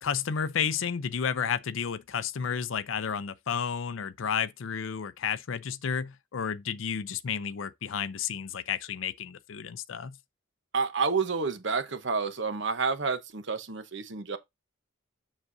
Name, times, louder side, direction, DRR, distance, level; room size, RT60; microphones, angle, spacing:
voice 1, 0.0-10.2, left 7 dB, 75° left, 0.5 m, -32 dB
voice 2, 10.7-14.4, right 4 dB, 60° right, 0.9 m, -29 dB
7.3 x 6.5 x 2.6 m
head